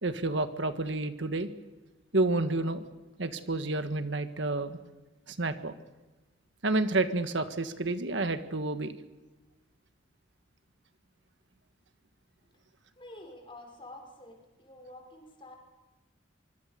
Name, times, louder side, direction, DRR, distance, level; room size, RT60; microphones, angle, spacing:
voice 1, 0.0-1.5 2.1-2.8 3.2-4.8 5.3-5.7 6.6-9.0, right 2 dB, 70° right, 9 dB, 1.6 m, -29 dB
voice 2, 13.0-15.6, left 1 dB, 25° left, 3 dB, 6.0 m, -49 dB
25.0 x 24.5 x 6.9 m, 1.1 s
head